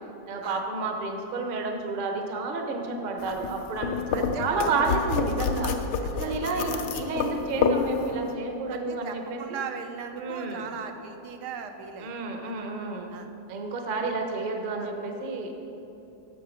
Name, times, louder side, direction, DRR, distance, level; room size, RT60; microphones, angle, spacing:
voice 1, 0.3-5.7 6.1-9.6 10.1-10.7 12.0-13.1 13.5-15.6, right 3 dB, 45° right, 3 dB, 0.7 m, -30 dB
sound 1, 3.2-8.3, left 5 dB, 80° left, 1.2 m, -29 dB
voice 2, 4.1-4.9 6.0-6.9 8.7-12.2 13.1-13.3 14.0-14.1 14.8-14.9, right 6 dB, 80° right, 5 dB, 1.2 m, -39 dB
7.7 x 6.6 x 5.0 m, 3.0 s
omnidirectional pair, 1.8 m